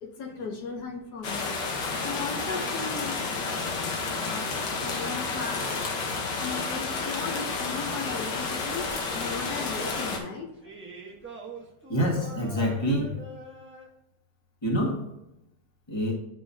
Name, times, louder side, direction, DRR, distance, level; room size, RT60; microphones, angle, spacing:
voice 1, 0.0-1.6 1.9-4.5 4.8-5.6 6.4-10.7, left 4 dB, 70° left, 2 dB, 1.5 m, -37 dB
sound 1, 1.2-10.2, left 4 dB, 90° left, 1.8 m, -31 dB
sound 2, 8.7-10.1 10.6-13.9, right 3 dB, 10° right, 0.9 m, -44 dB
voice 2, 11.9-13.1 14.6-15.0 15.9-16.1, equal, 15° left, -2 dB, 1.6 m, -26 dB
11.0 x 5.4 x 2.8 m, 0.89 s
omnidirectional pair, 1.8 m